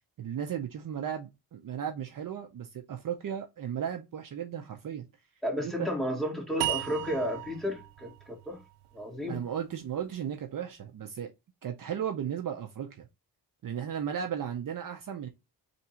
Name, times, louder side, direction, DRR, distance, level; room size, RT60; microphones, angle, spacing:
voice 1, 0.2-5.1 5.6-5.9 9.3-11.3 11.6-13.1 13.6-15.3, right 8 dB, 55° right, 0.7 m, -35 dB
voice 2, 5.4-8.6 8.9-9.4, equal, ahead, 2.0 m, -32 dB
sound 1, 6.6-9.8, right 16 dB, 90° right, 0.5 m, -37 dB
3.5 x 2.7 x 4.3 m
cardioid pair, 90°, 41 cm